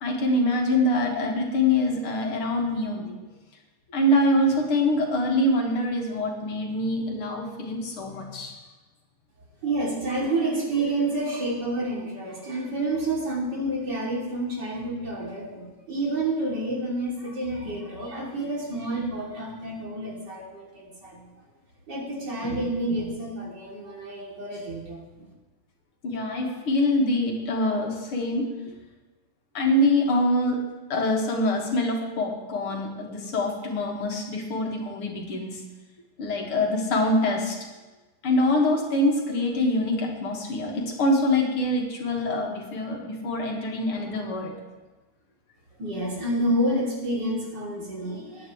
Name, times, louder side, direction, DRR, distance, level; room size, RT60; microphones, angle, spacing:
voice 1, 0.0-3.2 3.9-8.5 26.0-28.5 29.5-30.6 30.9-35.6 36.2-37.6 38.2-44.6, left 1 dB, 80° left, 0 dB, 2.7 m, -24 dB
voice 2, 9.6-21.3 21.9-25.3 45.8-48.5, right 1 dB, 50° right, -4 dB, 3.5 m, -29 dB
18.5 x 10.5 x 3.2 m, 1.2 s
omnidirectional pair, 2.4 m